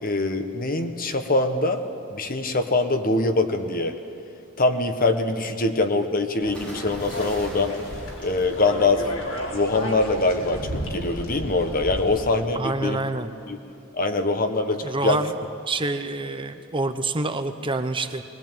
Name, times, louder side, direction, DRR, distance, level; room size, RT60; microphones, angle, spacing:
voice 1, 0.0-1.8 2.1-4.0 4.6-7.8 8.2-9.1 9.5-13.0 13.5-13.6 13.9-15.2, left 2 dB, 45° left, 7 dB, 1.4 m, -23 dB
sound 1, 6.4-12.3, equal, 75° left, 4.0 m, -33 dB
sound 2, 6.5-9.3 10.5-10.8, right 1 dB, 5° left, 6.0 m, -42 dB
voice 2, 12.5-13.3 14.8-15.3 15.7-18.2, right 2 dB, 25° right, 8 dB, 0.9 m, -27 dB
21.5 x 19.5 x 9.1 m, 2.6 s
head